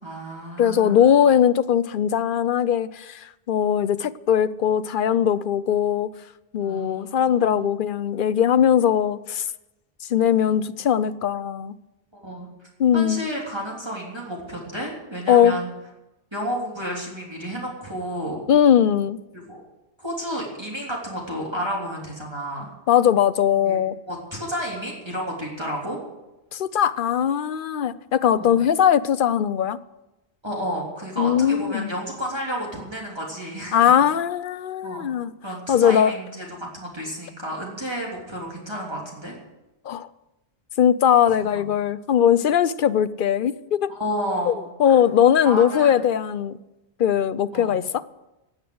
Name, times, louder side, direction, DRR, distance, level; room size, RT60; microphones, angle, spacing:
voice 1, 0.0-1.1 6.6-7.7 12.1-12.5 12.9-15.7 16.3-18.4 19.3-19.6 20.0-22.7 23.6-23.8 24.1-26.0 28.3-28.6 30.4-33.8 34.8-35.0 35.4-36.5 36.7-39.3 43.9-44.6 44.9-45.0 45.4-45.9 47.5-47.7, equal, 25° right, -3 dB, 3.3 m, -31 dB
voice 2, 0.6-6.1 6.5-9.5 10.1-11.7 12.8-13.2 15.3-15.5 18.5-19.2 22.9-24.0 26.5-29.8 31.2-31.9 33.7-35.3 35.7-36.1 39.9-40.1 40.8-43.9 44.5-46.6 47.0-48.0, left 9 dB, 55° left, 15 dB, 0.7 m, -20 dB
17.0 x 8.2 x 7.8 m, 1.0 s
omnidirectional pair, 1.1 m